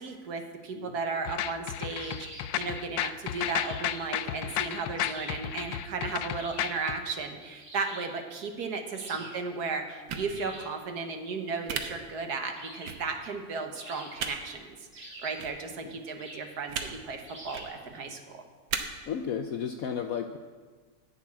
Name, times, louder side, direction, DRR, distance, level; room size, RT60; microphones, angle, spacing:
voice 1, 0.0-18.4, right 4 dB, 60° right, 5 dB, 1.5 m, -35 dB
sound 1, 1.3-7.0, left 12 dB, 85° left, 1.3 m, -33 dB
sound 2, 2.0-2.6 3.6-4.2 5.0-5.5 6.3-6.9 7.6-8.2 8.9-9.5 10.3-10.8 12.5-13.1 13.7-14.4 14.9-15.5 16.2-16.5 17.2-17.8, right 1 dB, 40° right, 2.9 m, -46 dB
sound 3, 10.1-10.3 11.7-11.8 12.9-13.0 14.2-14.3 15.4-15.5 16.7-16.9 17.4-17.7 18.7-18.8, right 7 dB, 90° right, 1.7 m, -33 dB
voice 2, 19.1-20.4, left 7 dB, 70° left, 6 dB, 0.8 m, -34 dB
10.5 x 7.2 x 8.7 m, 1.4 s
omnidirectional pair, 2.0 m